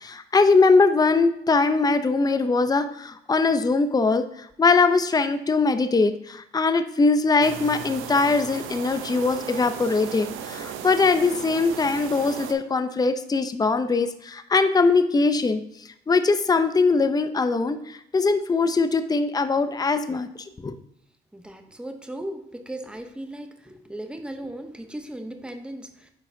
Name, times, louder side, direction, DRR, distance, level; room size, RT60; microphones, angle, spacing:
voice 1, 0.0-4.2 4.6-15.6 16.1-20.3 20.6-20.7, left 4 dB, 20° left, 10 dB, 0.6 m, -21 dB
sound 1, 7.4-12.5, right 8 dB, 90° right, 0.7 m, -36 dB
voice 2, 21.3-26.1, right 1 dB, 5° right, 6 dB, 0.9 m, -37 dB
8.7 x 5.5 x 2.7 m, 0.76 s
cardioid pair, 90°, 20 cm